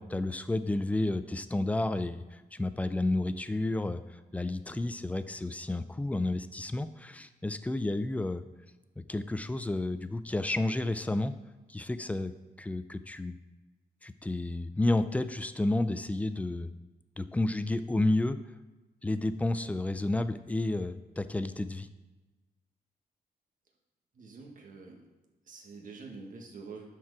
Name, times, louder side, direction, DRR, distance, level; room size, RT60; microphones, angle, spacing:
voice 1, 0.0-4.0 4.3-8.4 9.1-11.3 11.7-12.3 12.6-13.4 14.0-16.7 17.2-18.4 19.0-21.9, left 2 dB, 10° left, 12 dB, 0.4 m, -31 dB
voice 2, 24.1-25.0 25.5-26.9, right 4 dB, 55° right, 0 dB, 1.7 m, -46 dB
12.0 x 4.6 x 4.8 m, 1.2 s
wide cardioid pair, 145°, 16 cm